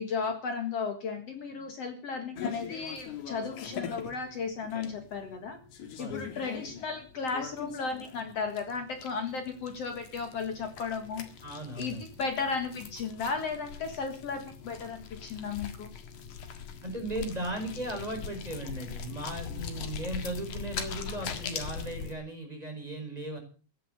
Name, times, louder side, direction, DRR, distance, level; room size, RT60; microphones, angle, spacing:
voice 1, 0.0-5.6 6.0-11.3 11.8-15.9, left 5 dB, 55° left, 6 dB, 2.6 m, -35 dB
sound 1, 2.4-22.1, left 7 dB, 85° left, 3.3 m, -41 dB
voice 2, 11.4-12.0 16.8-23.4, right 1 dB, 10° right, 3 dB, 4.9 m, -37 dB
15.5 x 11.5 x 6.6 m, 0.39 s
omnidirectional pair, 3.4 m